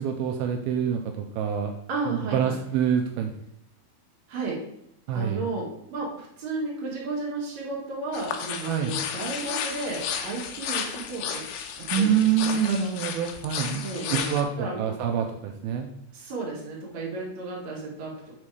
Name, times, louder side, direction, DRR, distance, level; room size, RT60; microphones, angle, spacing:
voice 1, 0.0-1.8 2.1-3.3 5.1-5.4 8.7-9.0 11.9-13.8 14.1-15.9, right 8 dB, 85° right, 3 dB, 2.6 m, -26 dB
voice 2, 1.9-2.6 4.3-4.6 5.1-11.4 11.8-12.6 13.8-14.3 14.6-14.9 16.1-18.3, right 3 dB, 50° right, -3 dB, 3.0 m, -33 dB
sound 1, 8.1-14.4, left 8 dB, 85° left, 2.6 m, -33 dB
8.8 x 4.2 x 4.8 m, 0.78 s
omnidirectional pair, 4.4 m